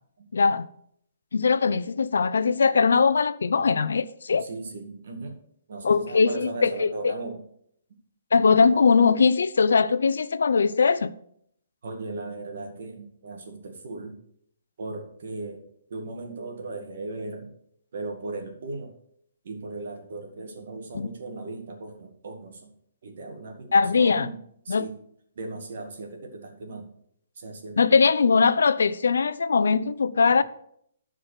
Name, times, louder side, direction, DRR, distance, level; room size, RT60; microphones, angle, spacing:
voice 1, 0.3-0.7 1.3-4.4 5.8-6.9 8.3-11.1 20.9-21.1 23.7-24.3 24.7-24.9 27.8-30.4, left 5 dB, 90° left, 0.6 m, -21 dB
voice 2, 4.4-5.4 5.7-7.4 11.8-14.2 14.8-17.5 17.9-19.0 19.4-22.7 23.0-24.4 24.6-25.0 25.4-26.9 27.4-28.0 30.2-30.3, right 2 dB, 50° right, 2.0 m, -37 dB
11.0 x 4.8 x 6.7 m
hypercardioid pair, 180°, 0 cm